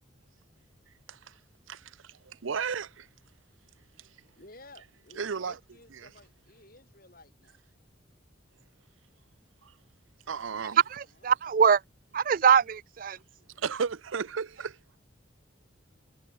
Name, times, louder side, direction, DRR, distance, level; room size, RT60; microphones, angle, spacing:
voice 1, 1.1-1.4 1.7-3.1 4.0-4.1 5.2-5.6 9.6-9.8 10.3-10.8 13.6-14.8, right 6 dB, 85° right, 0.6 m, -34 dB
voice 2, 4.3-7.6 10.9-11.3, left 2 dB, 45° left, 7.4 m, -54 dB
voice 3, 10.9-11.8 12.1-13.2, right 7 dB, 45° right, 0.4 m, -23 dB
head